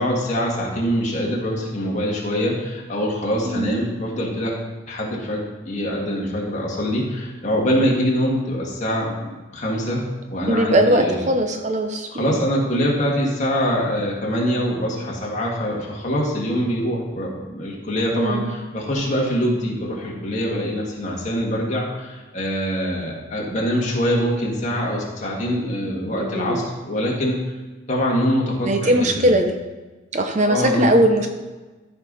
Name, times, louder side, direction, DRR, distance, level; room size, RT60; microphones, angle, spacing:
voice 1, 0.0-4.5 4.9-10.0 10.3-11.2 12.1-27.3 27.9-29.3 30.5-31.0, equal, 35° left, -3 dB, 2.1 m, -24 dB
voice 2, 3.4-3.8 10.5-12.3 18.1-18.5 26.2-26.7 28.6-29.6 30.1-31.3, right 1 dB, 35° right, 5 dB, 0.7 m, -20 dB
14.0 x 5.4 x 4.2 m, 1.2 s
head